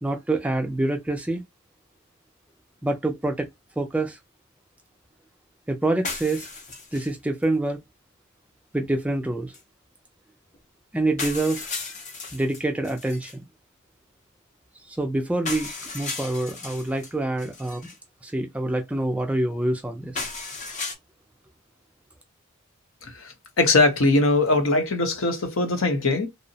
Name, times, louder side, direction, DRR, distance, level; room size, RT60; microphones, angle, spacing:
voice 1, 0.0-1.4 2.8-3.5 3.8-4.2 5.7-6.5 6.9-7.8 8.7-9.5 10.9-11.7 12.3-13.3 14.9-17.8 18.2-20.3, right 2 dB, 5° right, 0.3 m, -26 dB
sound 1, 6.0-7.1 7.4-7.5 9.5-9.6 10.5-10.6 11.2-13.3 15.4-17.1 17.4-18.0 20.1-20.9, left 3 dB, 35° left, 0.6 m, -35 dB
voice 2, 23.0-26.3, left 2 dB, 70° left, 0.7 m, -21 dB
2.7 x 2.0 x 2.6 m
head